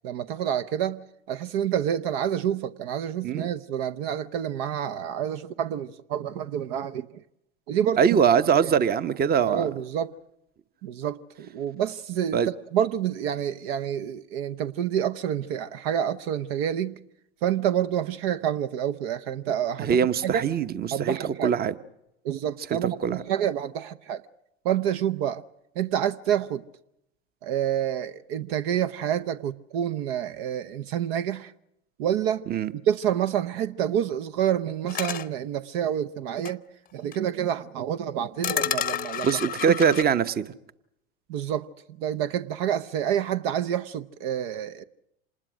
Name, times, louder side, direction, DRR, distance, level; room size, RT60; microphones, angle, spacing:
voice 1, 0.0-7.2 7.7-8.0 8.6-8.7 9.5-10.1 10.8-12.4 12.7-17.0 17.4-20.0 20.2-20.4 20.9-21.5 22.2-24.2 24.6-25.4 25.7-26.6 27.4-31.5 32.0-32.4 32.7-36.6 36.9-39.4 39.7-39.8 41.3-41.7 42.0-44.8, right 10 dB, 60° right, 0.9 m, -28 dB
voice 2, 8.0-9.7 12.3-12.5 19.8-21.7 22.8-23.2 32.5-32.7 39.2-40.5, right 7 dB, 30° right, 1.0 m, -23 dB
sound 1, 34.9-35.3 36.4-36.5 37.1-37.2 38.4-40.0, left 9 dB, 25° left, 0.8 m, -30 dB
26.5 x 20.0 x 6.3 m
hypercardioid pair, 85°, 33 cm